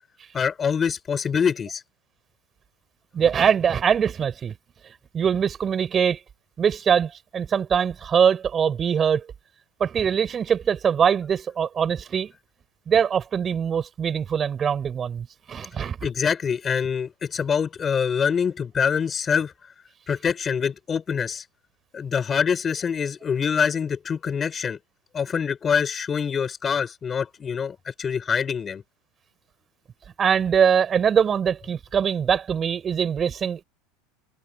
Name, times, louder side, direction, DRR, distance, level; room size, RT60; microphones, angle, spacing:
voice 1, 0.3-1.8 16.0-19.5 20.1-21.4 21.9-24.8 25.1-28.8, left 7 dB, 20° left, 6.9 m, -25 dB
voice 2, 3.1-4.5 5.1-6.2 6.6-9.3 9.8-12.3 12.9-16.0 30.2-33.6, right 7 dB, 20° right, 6.7 m, -22 dB
supercardioid pair, 165°, 0 cm